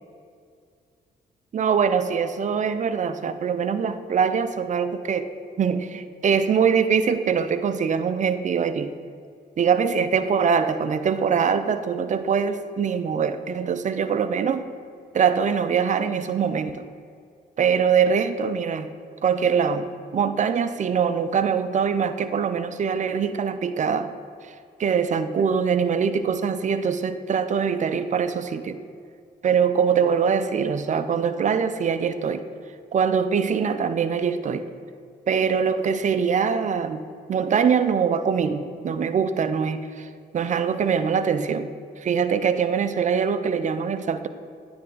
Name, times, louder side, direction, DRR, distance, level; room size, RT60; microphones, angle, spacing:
voice 1, 1.5-5.3 5.6-8.9 9.6-14.7 15.1-16.8 17.6-18.9 19.2-19.9 20.1-24.1 24.8-28.8 29.4-32.4 32.9-34.6 35.3-37.0 37.3-40.1 40.3-41.7 42.0-44.3, right 6 dB, 35° right, 11 dB, 0.5 m, -23 dB
9.6 x 3.4 x 3.9 m, 2.2 s
hypercardioid pair, 40°, 21 cm